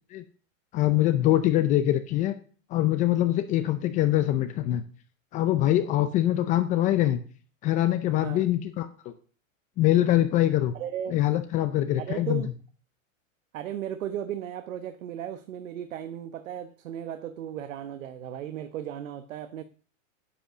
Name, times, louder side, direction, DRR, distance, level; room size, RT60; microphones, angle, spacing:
voice 1, 0.7-2.4 2.7-4.8 5.3-7.2 7.6-9.1 9.8-10.7 11.1-12.4, left 13 dB, 20° left, 0.5 m, -24 dB
voice 2, 10.7-11.2 12.0-12.5 13.5-19.6, right 10 dB, 75° right, 1.2 m, -35 dB
10.0 x 8.1 x 6.3 m
supercardioid pair, 155°, 40 cm